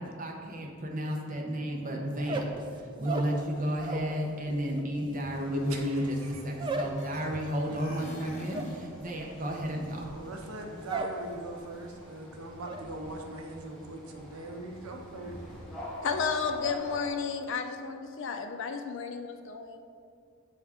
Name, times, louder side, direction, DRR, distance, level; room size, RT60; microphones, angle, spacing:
voice 1, 0.0-10.0, equal, 40° right, 0 dB, 0.8 m, -32 dB
sound 1, 2.1-4.2 4.5-11.2 11.5-12.0 12.3-12.8, right 2 dB, 25° right, 0.3 m, -38 dB
sound 2, 5.2-5.4 5.6-7.4 7.7-8.9, left 2 dB, 35° left, 0.9 m, -46 dB
sound 3, 5.4-17.1, equal, 5° left, 1.1 m, -47 dB
voice 2, 10.0-15.9, right 2 dB, 90° right, 3 dB, 0.7 m, -41 dB
voice 3, 16.0-19.8, left 5 dB, 60° left, 5 dB, 0.4 m, -32 dB
7.9 x 3.5 x 3.5 m, 2.4 s
head